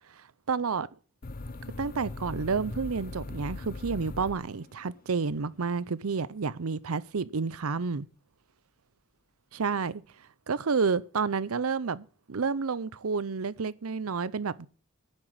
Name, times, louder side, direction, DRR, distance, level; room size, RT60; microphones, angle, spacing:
voice 1, 0.5-0.9 1.8-8.1 9.5-10.0 10.5-14.7, right 5 dB, 85° right, 0.7 m, -30 dB
sound 1, 1.2-5.0, left 2 dB, 40° left, 0.7 m, -40 dB
9.9 x 7.4 x 7.8 m
head